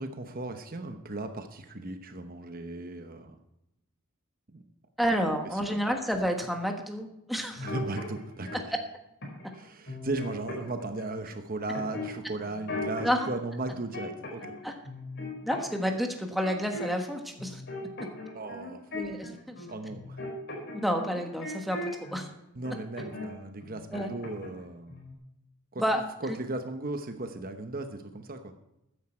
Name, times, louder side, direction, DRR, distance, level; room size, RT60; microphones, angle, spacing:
voice 1, 0.0-3.4 4.5-4.6 5.5-5.8 7.6-8.6 9.5-14.5 18.3-18.8 19.7-20.2 22.5-24.9 25.7-25.8 26.2-28.5, right 2 dB, 40° right, 7 dB, 1.0 m, -36 dB
voice 2, 5.0-7.7 13.0-13.2 14.6-14.7 15.4-17.6 18.9-19.6 20.7-22.3 23.9-24.1 25.8-26.0 26.3-26.4, equal, ahead, 3 dB, 1.3 m, -30 dB
sound 1, 7.6-8.6 9.2-9.6 9.9-11.1 11.7-13.3 13.6-14.6 14.8-17.1 17.4-22.2 22.6-23.3 23.6-24.6 24.9-25.1, left 2 dB, 55° left, 4.5 m, -39 dB
14.0 x 9.7 x 4.4 m, 0.86 s
head